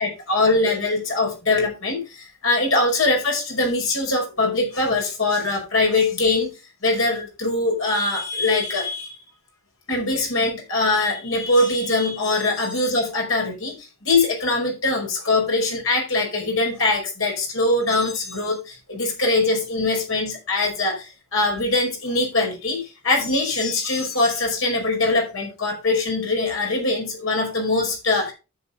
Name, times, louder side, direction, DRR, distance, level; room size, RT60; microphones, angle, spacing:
voice 1, 0.0-6.5 6.8-9.1 9.9-13.7 14.0-28.3, left 2 dB, 75° left, 1 dB, 5.3 m, -22 dB
10.0 x 7.9 x 3.8 m, 0.30 s
head